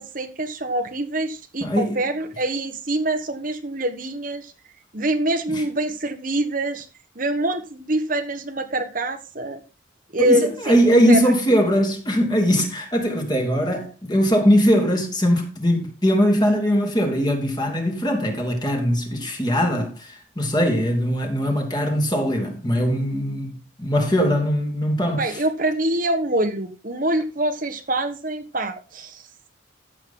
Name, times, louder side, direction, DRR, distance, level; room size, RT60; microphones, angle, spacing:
voice 1, 0.0-4.5 4.9-6.8 7.1-9.6 10.1-10.7 11.1-11.3 25.2-29.3, right 1 dB, 45° right, 1.4 m, -25 dB
voice 2, 1.6-2.0 5.5-5.6 10.2-25.4, equal, 20° left, 3.2 m, -21 dB
14.5 x 7.9 x 3.9 m
head